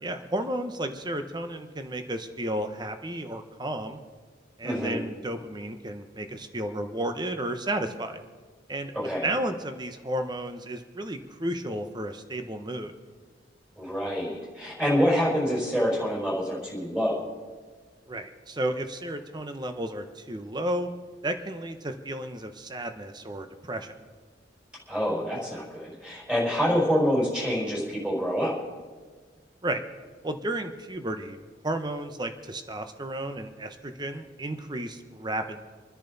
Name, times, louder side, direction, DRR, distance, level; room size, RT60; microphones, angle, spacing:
voice 1, 0.0-4.0 4.6-8.2 8.7-8.9 9.2-12.9 18.1-20.9 21.2-24.0 29.6-29.8 30.2-35.7, right 1 dB, 25° right, 7 dB, 1.0 m, -33 dB
voice 2, 4.6-5.0 8.9-9.3 13.8-17.2 24.9-28.5, equal, 5° right, -4 dB, 5.5 m, -26 dB
27.5 x 10.5 x 4.1 m, 1.5 s
head